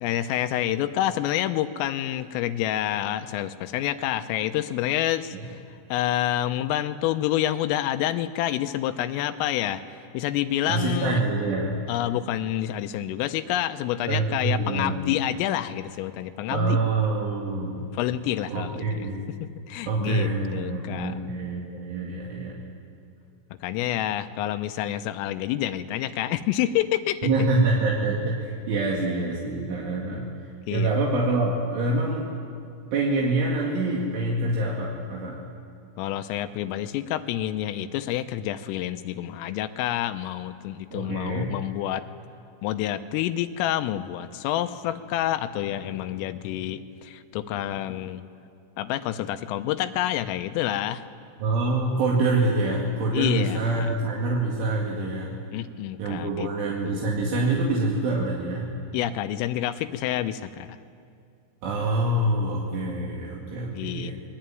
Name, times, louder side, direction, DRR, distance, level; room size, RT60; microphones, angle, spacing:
voice 1, 0.0-5.6 5.9-9.8 10.1-11.2 11.9-16.8 17.9-19.1 19.4-21.2 23.6-27.3 30.7-30.9 36.0-42.0 42.6-48.2 48.8-51.0 53.1-53.9 55.5-56.5 56.8-57.1 58.9-60.8 63.5-64.1, left 12 dB, 85° left, 9 dB, 3.4 m, -28 dB
voice 2, 10.7-11.8 14.1-15.0 16.5-17.9 18.5-19.3 19.9-22.6 27.2-30.3 30.7-32.3 32.9-35.4 40.9-41.5 51.4-55.4 56.0-58.7 61.6-64.1, right 2 dB, 70° right, -3 dB, 4.7 m, -26 dB
28.0 x 21.5 x 9.2 m, 2.5 s
omnidirectional pair, 5.8 m